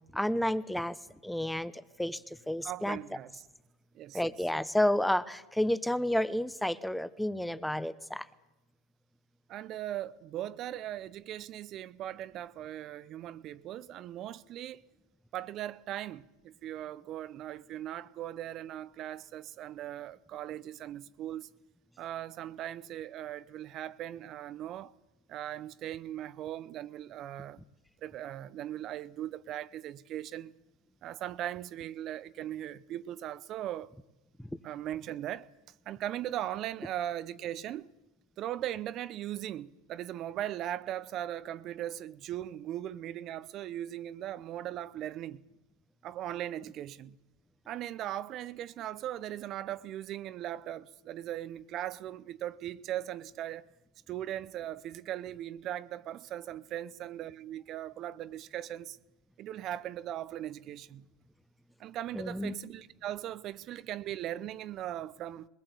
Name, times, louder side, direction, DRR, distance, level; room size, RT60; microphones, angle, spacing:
voice 1, 0.1-1.0 1.2-2.2 2.5-3.0 4.1-8.3 34.4-34.5 62.1-62.5, left 1 dB, 5° left, 0.9 m, -30 dB
voice 2, 2.6-3.4 3.9-4.2 9.5-14.8 15.3-21.5 22.0-24.9 25.3-27.6 28.0-30.5 31.0-33.9 34.6-35.5 35.9-37.9 38.4-45.4 46.0-47.2 47.7-53.7 54.1-59.0 59.4-61.0 61.8-65.5, right 12 dB, 45° right, 0.7 m, -39 dB
21.0 x 19.0 x 8.2 m
hypercardioid pair, 100°, 0 cm